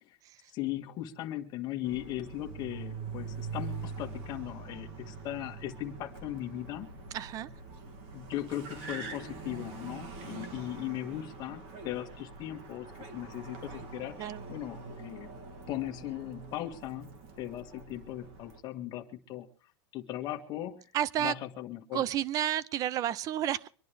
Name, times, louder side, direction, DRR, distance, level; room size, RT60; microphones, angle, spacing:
voice 1, 0.5-6.9 8.1-15.3 15.7-19.5 19.9-20.8 21.2-22.0, left 13 dB, 30° left, 1.7 m, -38 dB
Car, 1.8-18.6, right 4 dB, 45° right, 2.5 m, -44 dB
voice 2, 7.1-7.5 14.2-14.4 20.9-21.3 21.9-23.7, right 11 dB, 25° right, 0.6 m, -31 dB
25.0 x 11.0 x 3.4 m
supercardioid pair, 155°, 14 cm